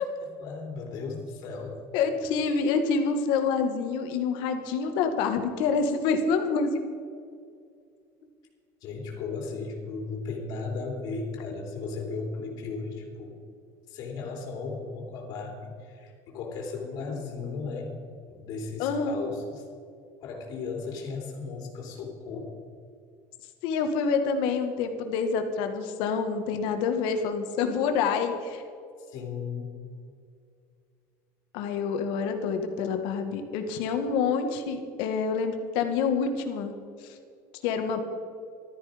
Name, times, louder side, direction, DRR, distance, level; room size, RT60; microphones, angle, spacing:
voice 1, 0.2-1.8 8.8-13.3 13.9-18.0 18.3-19.6 20.2-22.5 29.0-29.7, left 4 dB, 45° left, 1 dB, 3.2 m, -36 dB
voice 2, 1.9-6.7 18.8-19.2 23.6-28.6 31.5-36.7 37.0-37.1 37.6-38.0, left 5 dB, 65° left, 6 dB, 1.8 m, -27 dB
14.5 x 13.0 x 5.2 m, 2.3 s
cardioid pair, 170°, 9 cm